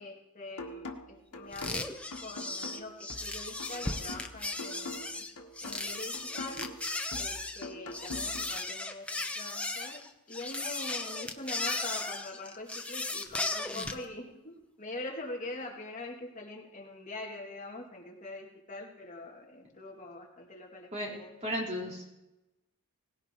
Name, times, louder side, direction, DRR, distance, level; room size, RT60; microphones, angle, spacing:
voice 1, 0.0-1.8 2.2-5.2 5.6-6.7 7.2-10.0 10.3-21.6, left 2 dB, 35° left, 0 dB, 2.3 m, -43 dB
sound 1, 0.6-8.6, left 2 dB, 90° left, 1.6 m, -44 dB
sound 2, 1.5-14.0, left 2 dB, 5° left, 0.9 m, -36 dB
voice 2, 21.4-22.1, equal, 30° right, -2 dB, 4.4 m, -35 dB
18.5 x 16.5 x 4.5 m, 0.93 s
head